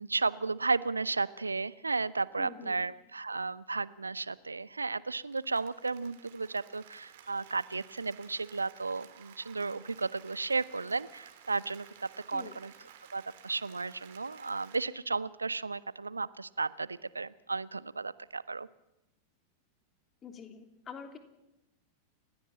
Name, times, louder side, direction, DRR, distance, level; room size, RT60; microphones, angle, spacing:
voice 1, 0.0-11.9 12.3-12.7 13.1-18.7, right 3 dB, 80° right, 20 dB, 0.7 m, -34 dB
voice 2, 2.4-2.8 12.3-12.6 20.2-21.2, left 6 dB, 25° left, 6 dB, 3.1 m, -46 dB
Applause, 5.1-14.8, right 9 dB, 55° right, 3.5 m, -55 dB
30.0 x 16.0 x 7.6 m, 0.93 s
figure-of-eight pair, 90°, 0 cm